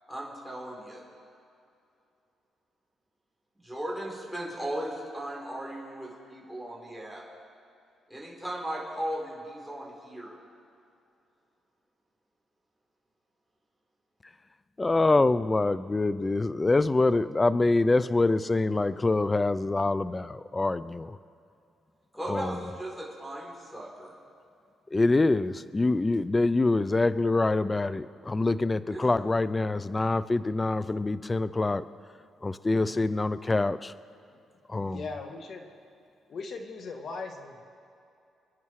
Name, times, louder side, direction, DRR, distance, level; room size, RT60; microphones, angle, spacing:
voice 1, 0.1-1.0 3.6-7.2 8.1-10.4 22.1-24.1 28.9-29.0, right 1 dB, ahead, -2 dB, 4.6 m, -37 dB
voice 2, 14.8-21.2 22.3-22.5 24.9-31.8 32.4-33.9 34.7-35.0, left 2 dB, 20° left, 15 dB, 0.5 m, -25 dB
voice 3, 32.6-33.0 34.3-34.4 34.8-35.9 36.3-37.6, left 4 dB, 55° left, 4 dB, 2.0 m, -40 dB
28.0 x 9.8 x 4.8 m, 2.6 s
cardioid pair, 90°, 0 cm